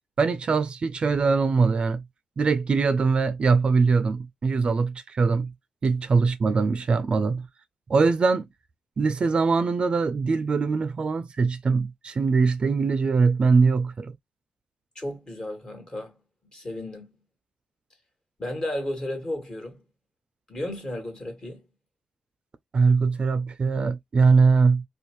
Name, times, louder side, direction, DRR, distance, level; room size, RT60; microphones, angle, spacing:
voice 1, 0.2-2.0 2.4-5.5 5.8-7.5 7.9-8.5 9.0-14.1 22.7-24.8, right 4 dB, 45° right, 0.4 m, -22 dB
voice 2, 14.9-16.2 16.5-17.1 18.4-19.8 20.5-21.6, left 1 dB, 35° left, 1.5 m, -33 dB
2.6 x 2.2 x 2.9 m
cardioid pair, 80°, 2 cm